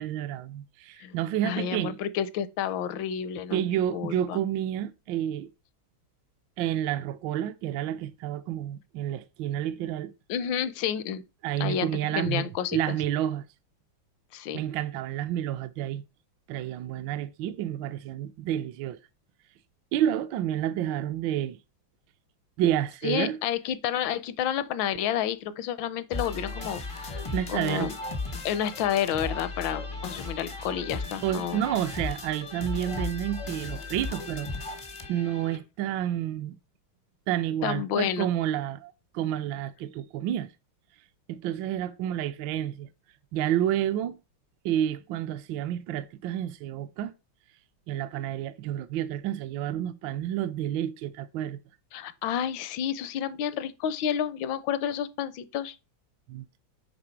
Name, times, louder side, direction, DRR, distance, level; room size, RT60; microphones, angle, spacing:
voice 1, 0.0-2.0 3.5-5.5 6.6-10.1 11.4-13.5 14.5-16.0 16.5-19.0 19.9-21.6 22.6-23.4 27.3-27.9 31.2-34.5 35.1-36.6 37.3-40.5 41.3-42.9 43.3-44.2 44.6-47.1 47.9-51.6 56.3-56.4, right 11 dB, 75° right, 1.2 m, -30 dB
voice 2, 1.4-3.7 3.9-4.4 10.3-11.2 11.6-13.0 14.3-14.6 23.0-27.2 27.5-28.0 28.4-31.6 37.6-38.3 51.9-55.8, left 9 dB, 75° left, 1.3 m, -30 dB
sound 1, 26.1-35.6, left 3 dB, 35° left, 0.4 m, -36 dB
8.8 x 3.5 x 4.5 m
omnidirectional pair, 2.2 m